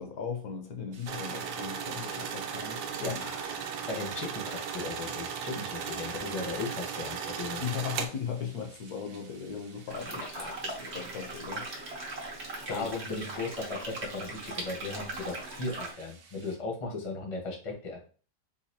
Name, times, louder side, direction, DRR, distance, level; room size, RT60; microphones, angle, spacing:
voice 1, 0.0-3.2 7.6-10.2 10.6-11.8 12.7-12.9, left 7 dB, 70° left, 3 dB, 1.1 m, -37 dB
sound 1, 0.9-16.6, right 5 dB, 65° right, 1.0 m, -56 dB
sound 2, 1.1-8.1, right 7 dB, 85° right, 1.2 m, -36 dB
voice 2, 3.0-7.6 10.1-10.5 11.2-11.3 12.7-18.0, left 3 dB, 25° left, 0 dB, 0.7 m, -37 dB
sound 3, 9.9-15.9, right 2 dB, 45° right, 1.0 m, -39 dB
4.0 x 2.6 x 2.7 m, 0.38 s
omnidirectional pair, 1.7 m